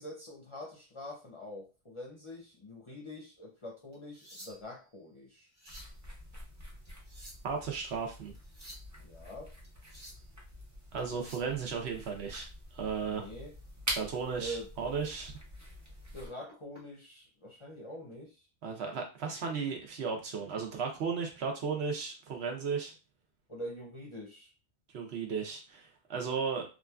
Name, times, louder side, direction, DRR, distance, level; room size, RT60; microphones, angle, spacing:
voice 1, 0.0-5.5 9.0-9.5 13.1-13.5 14.4-14.7 16.1-18.5 23.5-24.5, equal, 35° left, -2 dB, 0.5 m, -45 dB
sound 1, 3.9-4.8 5.4-6.0 6.8-7.6 8.3-8.9 9.6-10.3 11.0-11.5 13.6-13.7 14.2-14.5 14.9-15.1 16.2-16.8 17.9-18.1, equal, 45° right, 1.1 m, -52 dB
sound 2, 5.7-16.3, equal, 20° right, 0.6 m, -45 dB
voice 2, 7.4-8.3 10.9-12.5 12.7-13.3 13.9-15.3 18.6-22.9 24.9-26.6, right 5 dB, 75° right, 2 dB, 1.0 m, -35 dB
3.0 x 2.5 x 2.2 m, 0.31 s
omnidirectional pair, 1.1 m